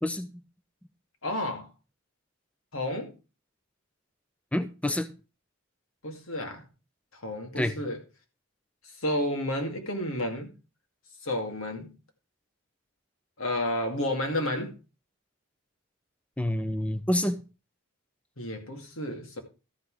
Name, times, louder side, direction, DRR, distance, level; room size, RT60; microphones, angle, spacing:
voice 1, 1.2-1.7 2.7-3.1 6.0-6.7 7.1-8.0 9.0-10.5 11.2-11.9 13.4-14.7 18.4-19.4, left 1 dB, 90° left, 2.5 m, -31 dB
voice 2, 4.5-5.1 7.6-7.7 16.4-17.4, left 1 dB, 5° left, 0.6 m, -27 dB
13.0 x 5.9 x 4.9 m
head